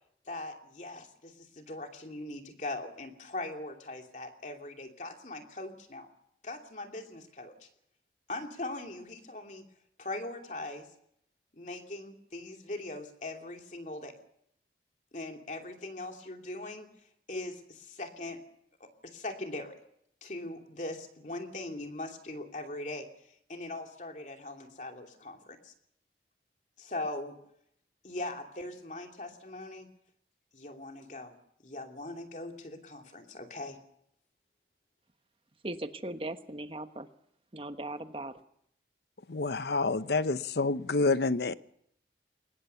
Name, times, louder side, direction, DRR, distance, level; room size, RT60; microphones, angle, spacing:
voice 1, 0.3-6.1 6.4-7.7 8.3-9.6 10.0-10.9 11.5-14.1 15.1-16.9 17.3-18.4 18.8-19.8 20.2-23.1 23.5-25.7 26.8-27.4 28.0-29.9 30.5-31.3 31.6-33.8, left 2 dB, 45° left, 2.8 m, -40 dB
voice 2, 35.6-37.1 37.5-38.3, right 1 dB, 30° right, 1.3 m, -38 dB
voice 3, 39.3-41.5, left 3 dB, 70° left, 0.8 m, -28 dB
23.0 x 20.5 x 6.9 m
head